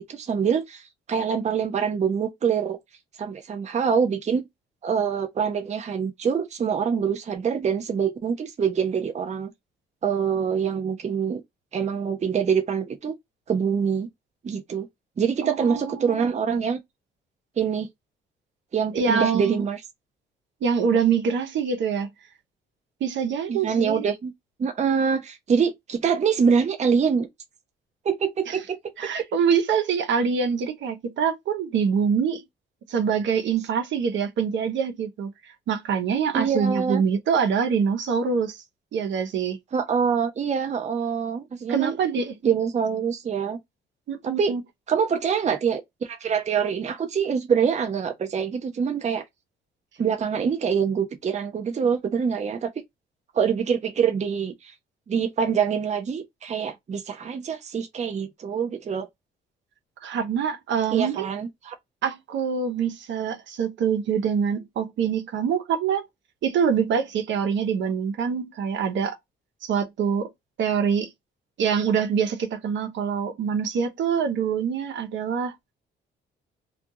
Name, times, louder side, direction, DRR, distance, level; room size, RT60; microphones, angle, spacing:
voice 1, 0.0-2.8 3.2-4.5 4.8-9.5 10.0-11.4 11.7-13.1 13.5-14.1 14.4-14.9 15.2-16.8 17.6-17.9 18.7-19.8 23.5-24.3 24.6-27.3 28.0-28.6 29.0-29.1 36.3-37.0 39.7-42.0 42.4-43.6 44.2-44.5 44.9-49.2 50.0-52.7 53.3-54.7 55.1-59.1 60.9-61.7, right 6 dB, 35° right, 0.6 m, -25 dB
voice 2, 15.4-16.4 18.9-19.6 20.6-22.1 23.0-24.1 28.5-28.6 29.0-32.4 32.9-38.6 38.9-39.6 41.7-42.3 44.1-44.6 60.0-61.3 62.0-66.1 66.4-69.2 69.6-70.3 70.6-71.1 71.6-75.5, right 6 dB, 70° right, 0.8 m, -25 dB
2.4 x 2.3 x 2.7 m
cardioid pair, 90°, 20 cm